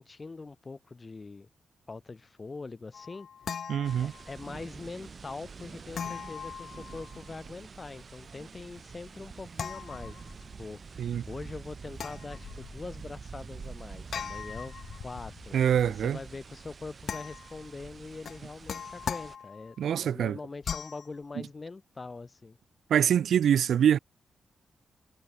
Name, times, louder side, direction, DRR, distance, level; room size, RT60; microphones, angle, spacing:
voice 1, 0.0-1.5 1.9-3.3 4.0-10.8 11.3-15.6 15.9-22.6, left 3 dB, 25° left, 4.8 m, -43 dB
sound 1, 2.9-4.5 5.9-7.3 9.5-10.6 11.9-13.0 14.1-15.5 17.0-17.7 18.2-19.8 20.6-21.1, left 7 dB, 55° left, 0.6 m, -40 dB
voice 2, 3.7-4.1 11.0-11.2 15.5-16.2 19.8-20.4 22.9-24.0, right 9 dB, 80° right, 0.5 m, -24 dB
sound 2, 3.8-19.4, right 5 dB, 35° right, 0.9 m, -46 dB
wide cardioid pair, 170°, 0 cm